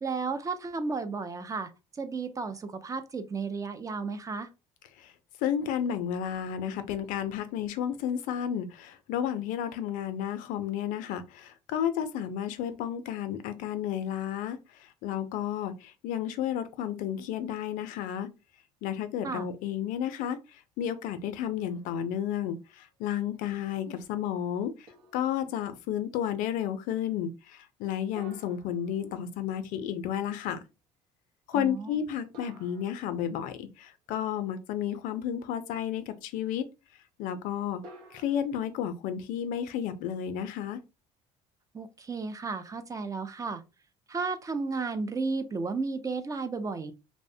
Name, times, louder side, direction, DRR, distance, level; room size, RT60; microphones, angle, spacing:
voice 1, 0.0-4.5 19.2-19.5 31.5-32.0 41.7-43.6 44.1-46.9, right 4 dB, 25° right, 0.4 m, -33 dB
voice 2, 5.4-18.3 18.8-24.7 25.1-30.6 31.5-36.7 37.2-37.8 38.1-40.8, left 9 dB, 75° left, 0.4 m, -32 dB
sound 1, 21.6-22.4 22.9-23.0 24.9-25.8 28.2-29.7 32.3-33.7 37.8-38.4, right 1 dB, 85° right, 0.8 m, -53 dB
2.6 x 2.0 x 2.6 m
supercardioid pair, 90°, 14 cm